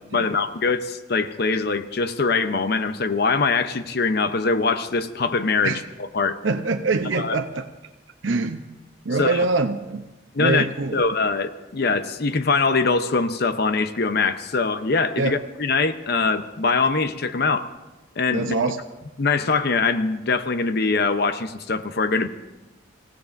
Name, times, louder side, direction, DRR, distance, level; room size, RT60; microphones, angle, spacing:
voice 1, 0.1-6.4 7.1-7.4 9.2-9.5 10.3-10.7 10.9-17.7 18.2-18.5 19.2-22.3, left 4 dB, 60° left, 10 dB, 0.8 m, -23 dB
voice 2, 6.4-7.6 8.2-8.6 9.0-10.0 10.4-11.0 15.2-15.4 18.3-18.8, right 3 dB, 90° right, 6 dB, 0.8 m, -24 dB
27.0 x 16.0 x 2.6 m, 1.1 s
head